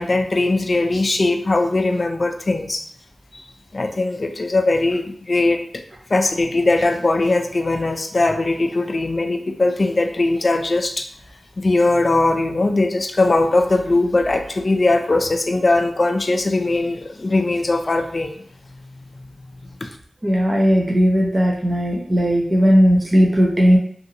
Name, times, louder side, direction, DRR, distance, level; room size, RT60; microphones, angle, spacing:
voice 1, 0.0-2.8 3.3-3.4 3.7-5.6 6.1-11.1 11.6-18.3 19.8-19.9, left 2 dB, 45° left, 5 dB, 0.4 m, -20 dB
voice 2, 20.2-23.8, equal, 25° right, -1 dB, 0.6 m, -16 dB
2.7 x 2.6 x 2.6 m, 0.64 s
wide cardioid pair, 85°, 0 cm